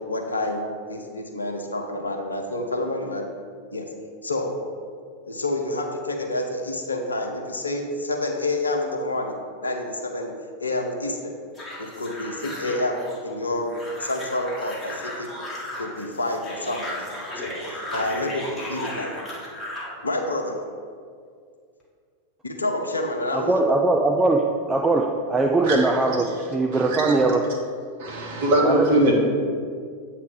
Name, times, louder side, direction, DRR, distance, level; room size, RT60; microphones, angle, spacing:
voice 1, 0.1-3.2 3.7-3.9 4.2-4.5 5.2-10.3 10.6-11.3 11.8-13.7 14.0-15.3 15.8-17.5 17.9-19.2 20.0-20.6 22.4-23.6, left 2 dB, 80° left, 3 dB, 0.7 m, -28 dB
sound 1, 11.6-19.9, left 1 dB, 15° left, 1.5 m, -35 dB
voice 2, 23.3-27.4 28.6-28.9, right 2 dB, 15° right, 1 dB, 0.3 m, -21 dB
voice 3, 26.7-27.1 28.0-29.1, right 1 dB, 55° right, -1 dB, 1.2 m, -22 dB
8.1 x 3.0 x 4.7 m, 2.1 s
figure-of-eight pair, 90°, 0 cm